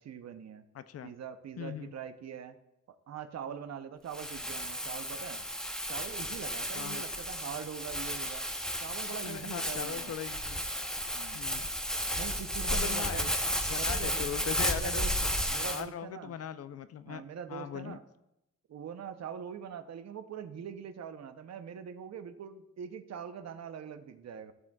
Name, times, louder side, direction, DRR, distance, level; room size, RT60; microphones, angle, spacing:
voice 1, 0.0-0.6 1.0-2.6 2.9-5.5 5.9-8.5 8.8-10.2 11.1-11.4 12.2-13.3 13.8-14.3 14.7-16.4 17.1-18.0 18.7-24.5, right 7 dB, 60° right, 10 dB, 0.7 m, -43 dB
voice 2, 0.7-1.1 1.6-1.9 6.7-7.0 9.2-10.6 11.3-11.7 12.6-13.3 13.7-15.1 15.5-18.0, left 9 dB, 55° left, 13 dB, 0.4 m, -40 dB
Crumpling crinkling, 4.1-15.8, equal, ahead, 0.7 m, -33 dB
14.5 x 6.1 x 2.3 m, 0.86 s
wide cardioid pair, 125°, 29 cm